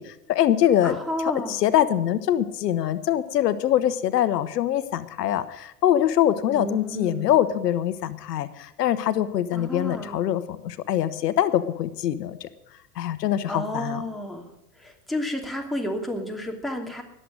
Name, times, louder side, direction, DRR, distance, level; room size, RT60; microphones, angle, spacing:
voice 1, 0.0-12.5 13.0-14.0, left 11 dB, 80° left, 13 dB, 1.0 m, -24 dB
voice 2, 0.8-1.6 6.5-7.3 9.5-10.2 13.5-14.5 15.1-17.0, left 1 dB, ahead, 0 dB, 2.8 m, -31 dB
20.0 x 7.8 x 6.4 m, 0.86 s
hypercardioid pair, 95°, 48 cm